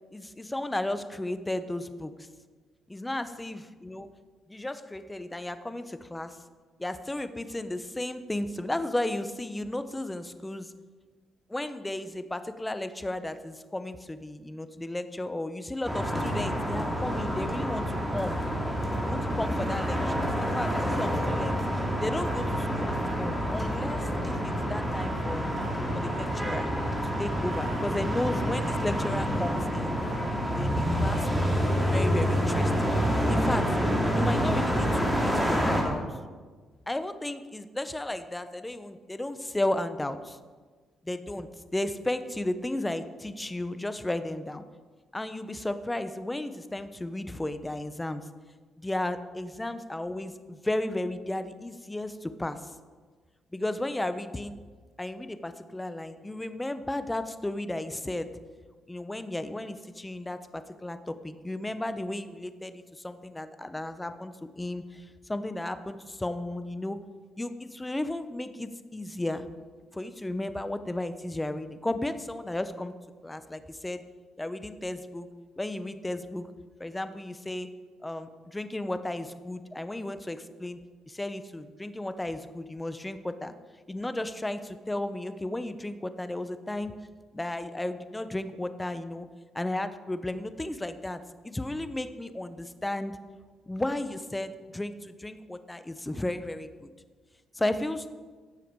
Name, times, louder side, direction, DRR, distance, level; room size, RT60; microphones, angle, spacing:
voice 1, 0.1-2.3 2.9-4.1 4.5-6.4 6.8-10.7 11.5-18.4 19.0-21.6 22.0-25.5 26.0-26.7 27.0-30.0 30.6-31.5 31.9-32.9 33.3-33.8 34.2-36.0 36.9-40.4 41.0-44.6 45.1-48.2 48.8-52.7 53.5-54.6 55.0-58.3 58.9-67.0 67.4-69.4 69.9-72.9 73.2-74.0 74.4-75.3 75.6-76.5 76.8-77.7 78.0-80.8 81.1-83.5 83.9-86.9 87.3-89.3 89.5-93.1 93.7-96.9 97.5-98.1, left 1 dB, 10° left, 11 dB, 0.8 m, -34 dB
sound 1, 15.8-35.8, equal, 5° right, 2.9 m, -28 dB
16.5 x 7.0 x 4.7 m, 1.5 s
cardioid pair, 90°, 0 cm